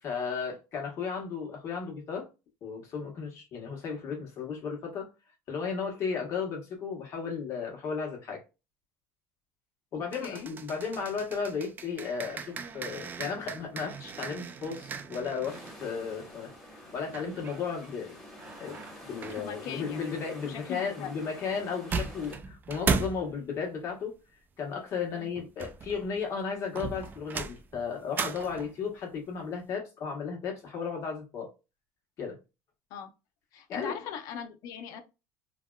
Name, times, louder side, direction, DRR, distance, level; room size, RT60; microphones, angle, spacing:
voice 1, 0.0-2.3 2.6-5.1 5.5-8.4 9.9-16.5 16.8-18.2 18.6-24.1 24.6-31.5 32.2-32.4 33.7-34.0, left 5 dB, 45° left, 1.2 m, -34 dB
voice 2, 9.9-10.5 19.3-20.1 20.4-21.1 25.1-25.3 32.9-33.1 33.5-35.0, left 7 dB, 65° left, 0.6 m, -40 dB
sound 1, 10.1-15.8 17.1-17.9 18.4-19.5 21.6-21.7 21.9-23.3 25.4-26.2 26.8-28.8, right 5 dB, 30° right, 0.3 m, -36 dB
sound 2, 15.5-22.4, left 1 dB, 5° left, 1.4 m, -48 dB
3.3 x 2.3 x 2.3 m
cardioid pair, 130°, 7 cm